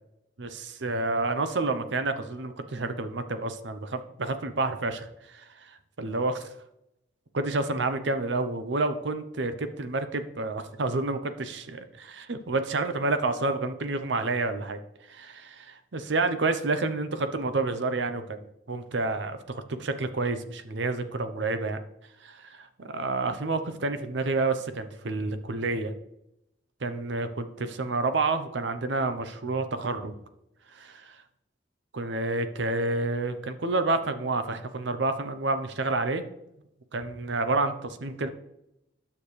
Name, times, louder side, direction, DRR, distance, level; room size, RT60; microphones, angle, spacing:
voice 1, 0.4-6.5 7.3-14.8 15.1-21.8 22.2-25.9 26.8-30.2 30.7-31.2 31.9-36.2 36.9-38.3, right 3 dB, 75° right, 9 dB, 0.7 m, -29 dB
9.9 x 6.7 x 3.3 m, 0.84 s
head